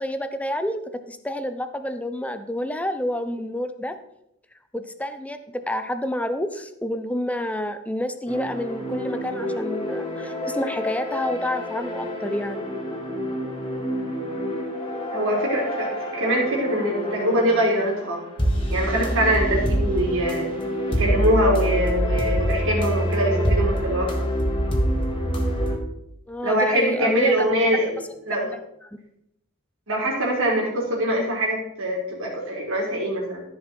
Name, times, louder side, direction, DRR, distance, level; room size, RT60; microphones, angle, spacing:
voice 1, 0.0-4.0 4.7-12.7 26.3-27.5 28.5-28.9, left 1 dB, 5° left, 9 dB, 0.7 m, -29 dB
sound 1, 8.3-25.8, equal, 25° left, 2.2 m, -26 dB
voice 2, 15.1-18.2 18.7-20.5 20.9-24.3 26.4-28.5 29.9-33.4, right 1 dB, 65° right, -2 dB, 4.0 m, -23 dB
14.0 x 6.4 x 4.5 m, 0.79 s
head